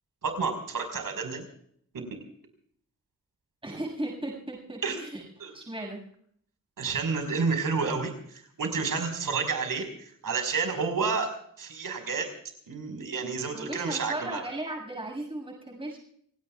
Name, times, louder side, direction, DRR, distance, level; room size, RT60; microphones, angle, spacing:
voice 1, 0.2-1.5 1.9-2.0 4.8-5.0 5.4-5.5 6.8-11.3 11.6-12.3 12.7-14.4, right 4 dB, 80° right, 5 dB, 5.2 m, -30 dB
voice 2, 3.6-6.0 13.5-16.0, right 1 dB, 15° right, -1 dB, 6.9 m, -36 dB
30.0 x 18.0 x 2.4 m, 0.64 s
wide cardioid pair, 135°, 33 cm